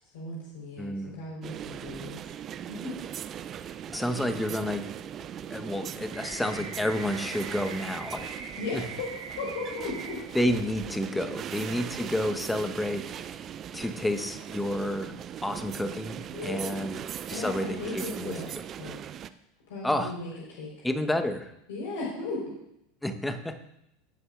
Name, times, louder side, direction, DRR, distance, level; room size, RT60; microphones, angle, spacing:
voice 1, 0.1-2.2 2.7-2.9 8.6-9.1 9.4-10.2 11.2-11.3 11.7-11.8 16.3-17.0 17.3-18.5 18.8-19.0 19.2-19.3 19.7-20.7 21.7-22.5, left 3 dB, 60° left, -4 dB, 4.4 m, -36 dB
voice 2, 0.8-1.2 3.6-4.8 5.5-8.3 8.7-8.8 10.3-13.5 13.7-15.2 15.4-17.0 17.3-18.4 19.8-20.2 20.8-21.5 23.0-23.6, left 1 dB, 5° left, 9 dB, 1.1 m, -30 dB
sound 1, 1.4-19.3, right 9 dB, 35° right, 0.5 m, -39 dB
sound 2, 6.1-10.1, right 4 dB, 70° right, 2.6 m, -42 dB
17.0 x 11.0 x 2.5 m, 0.83 s
figure-of-eight pair, 80°, 0 cm